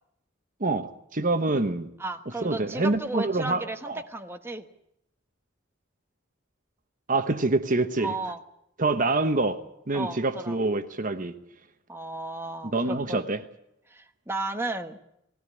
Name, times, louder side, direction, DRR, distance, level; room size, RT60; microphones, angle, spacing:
voice 1, 0.6-1.9 2.4-4.0 7.1-8.1 8.8-11.3 12.6-13.4, right 2 dB, 45° right, 1.1 m, -26 dB
voice 2, 2.0-4.7 8.0-8.4 9.9-10.6 11.9-13.2 13.9-15.0, right 2 dB, 10° right, 1.2 m, -34 dB
19.5 x 16.5 x 9.9 m
head